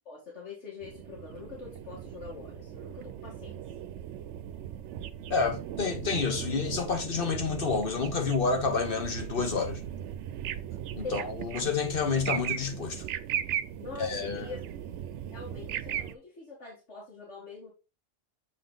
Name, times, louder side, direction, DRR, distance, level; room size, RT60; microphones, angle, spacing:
voice 1, 0.1-3.6 11.0-11.3 13.8-14.6 15.3-17.7, left 4 dB, 80° left, 2.2 m, -44 dB
sound 1, 0.8-16.2, right 10 dB, 80° right, 0.9 m, -38 dB
voice 2, 5.3-9.8 10.9-13.0 14.0-14.5, left 5 dB, 55° left, 1.1 m, -29 dB
7.6 x 3.8 x 3.8 m
omnidirectional pair, 1.2 m